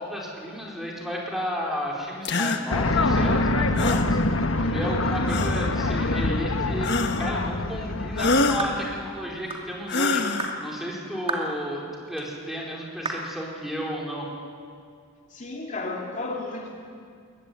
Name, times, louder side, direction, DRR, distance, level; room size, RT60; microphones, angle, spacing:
voice 1, 0.0-14.3, equal, ahead, -3 dB, 4.7 m, -33 dB
sound 1, 2.3-2.6 3.8-4.1 5.3-5.7 6.8-7.4 8.2-8.7 9.9-10.6, left 3 dB, 60° left, 1.6 m, -25 dB
sound 2, 2.7-9.0, left 2 dB, 85° left, 1.4 m, -25 dB
sound 3, 8.6-8.8 9.5-9.7 10.4-10.6 11.3-11.5 12.2-12.3 13.1-13.3, right 3 dB, 30° right, 2.8 m, -31 dB
voice 2, 15.3-16.7, left 2 dB, 40° left, -1 dB, 2.7 m, -33 dB
22.5 x 20.0 x 9.6 m, 2.2 s
head